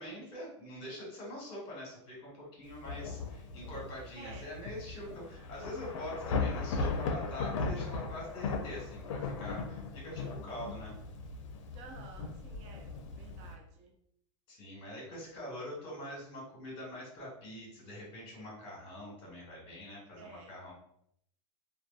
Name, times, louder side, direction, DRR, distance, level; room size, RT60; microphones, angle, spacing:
voice 1, 0.0-10.9 14.5-20.7, left 1 dB, 40° left, -4 dB, 1.1 m, -44 dB
Thunder / Rain, 2.7-13.6, left 4 dB, 85° left, 0.4 m, -38 dB
voice 2, 4.2-4.6 11.7-13.9 17.8-17.9 20.2-20.6, right 4 dB, 50° right, 2 dB, 0.6 m, -53 dB
2.5 x 2.1 x 2.4 m, 0.70 s
hypercardioid pair, 115°, 16 cm